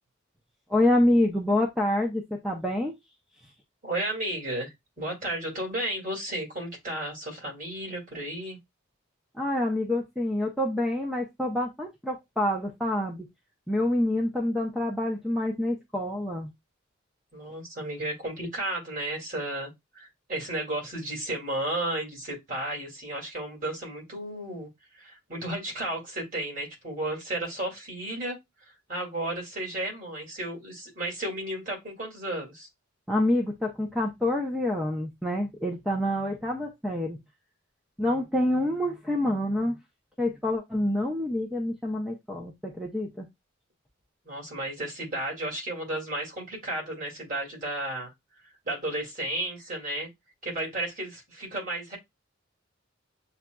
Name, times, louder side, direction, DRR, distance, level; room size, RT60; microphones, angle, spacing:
voice 1, 0.7-2.9 9.3-13.3 13.7-16.5 33.1-37.2 38.0-39.8 40.2-43.3, left 1 dB, ahead, 0.5 m, -27 dB
voice 2, 3.8-8.6 17.3-24.7 24.9-28.4 28.9-32.7 44.2-48.1 48.7-50.1 50.4-52.0, right 1 dB, 40° right, 2.1 m, -33 dB
7.1 x 2.4 x 2.2 m
head